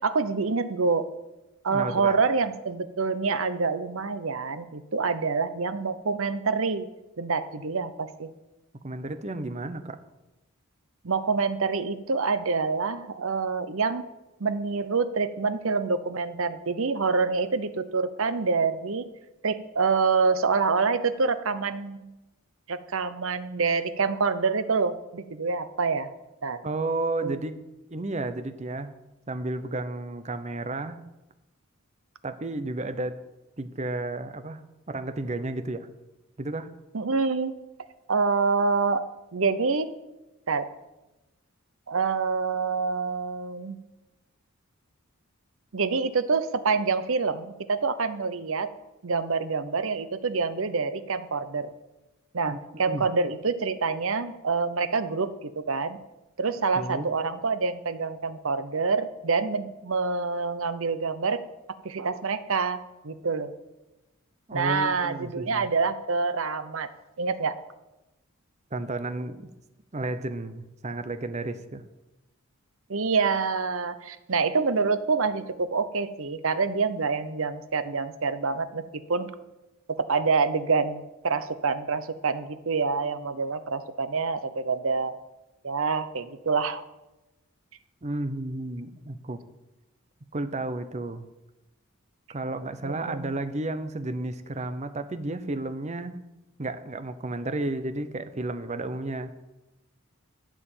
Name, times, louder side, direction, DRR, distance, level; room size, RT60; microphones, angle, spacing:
voice 1, 0.0-1.1 1.6-6.9 7.2-8.3 11.0-14.1 14.4-19.1 19.4-22.1 22.7-26.1 26.4-26.6 27.2-27.4 36.9-37.5 38.1-39.1 39.3-39.9 40.5-40.7 41.9-43.8 45.7-48.7 49.0-51.7 52.3-56.0 56.4-61.4 61.8-63.5 64.5-66.9 67.2-67.6 72.9-78.8 79.1-79.3 80.0-85.2 85.6-86.8 92.8-93.3, right 4 dB, 60° right, 12 dB, 0.8 m, -26 dB
voice 2, 1.7-2.2 8.8-10.0 26.6-27.6 27.9-28.9 29.3-31.0 32.2-33.2 33.6-34.6 34.9-35.9 36.4-36.7 52.5-52.6 52.9-53.1 56.7-57.1 64.5-65.7 68.7-69.5 69.9-71.8 88.0-89.4 90.3-91.3 92.3-96.2 96.6-99.4, right 2 dB, 30° right, 10 dB, 0.8 m, -32 dB
12.5 x 5.0 x 8.9 m, 1.0 s
head